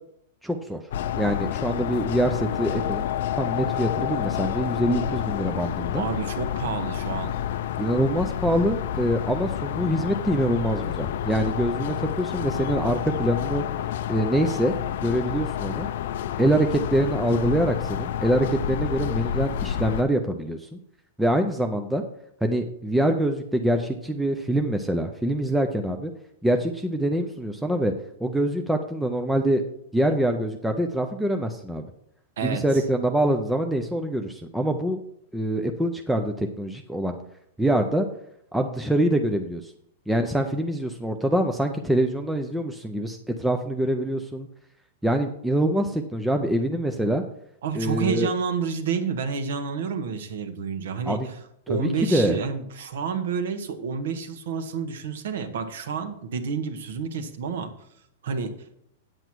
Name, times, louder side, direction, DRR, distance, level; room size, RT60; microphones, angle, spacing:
voice 1, 0.4-0.8 1.2-3.1 3.4-6.0 7.8-13.6 14.1-14.7 15.0-15.9 16.4-20.8 21.2-22.0 22.4-26.1 26.4-27.9 28.2-29.6 29.9-31.8 32.4-35.0 35.3-37.2 37.6-38.1 38.5-39.7 40.1-44.5 45.0-47.2 47.7-48.3 51.1-51.3 51.7-52.4, right 1 dB, ahead, 4 dB, 0.4 m, -25 dB
sound 1, 0.9-20.0, left 10 dB, 55° left, 0.5 m, -29 dB
voice 2, 5.9-7.3 32.4-32.8 47.6-51.4 51.7-57.7 58.2-58.5, right 5 dB, 70° right, 9 dB, 1.3 m, -29 dB
9.1 x 7.9 x 4.6 m, 0.72 s
supercardioid pair, 175°, 0 cm